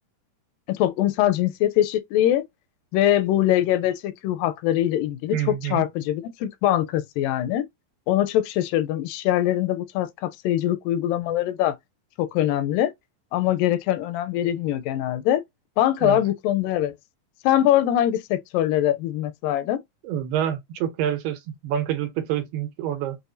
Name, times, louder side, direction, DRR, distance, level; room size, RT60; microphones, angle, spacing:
voice 1, 0.7-2.4 2.9-7.7 8.1-11.8 12.2-12.9 13.3-15.4 15.8-16.9 17.4-19.8, left 12 dB, 85° left, 2.2 m, -23 dB
voice 2, 5.3-5.8 16.0-16.2 20.0-23.2, right 10 dB, 90° right, 2.5 m, -27 dB
6.4 x 2.4 x 2.5 m
omnidirectional pair, 4.0 m